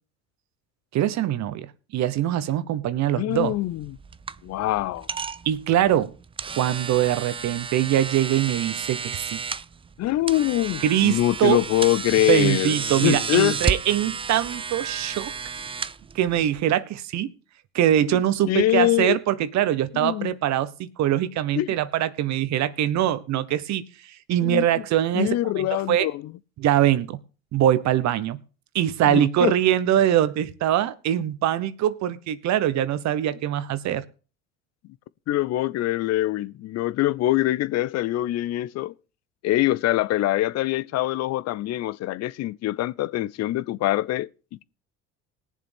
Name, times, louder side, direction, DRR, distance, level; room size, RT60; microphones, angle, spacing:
voice 1, 0.9-3.5 5.4-6.1 6.6-9.4 10.8-11.6 12.3-15.3 16.1-17.3 17.7-26.1 26.6-27.2 27.5-28.4 28.7-34.0, right 11 dB, 55° right, 1.1 m, -23 dB
voice 2, 3.1-4.0 4.4-5.1 10.0-13.6 18.1-18.2 18.5-19.2 19.9-20.3 21.6-21.7 24.4-24.6 25.1-26.3 29.1-29.5 35.3-38.9 39.4-44.6, left 15 dB, 50° left, 0.6 m, -24 dB
sound 1, 3.3-16.6, right 5 dB, 15° right, 0.5 m, -32 dB
20.0 x 7.4 x 3.5 m
hypercardioid pair, 70°, 33 cm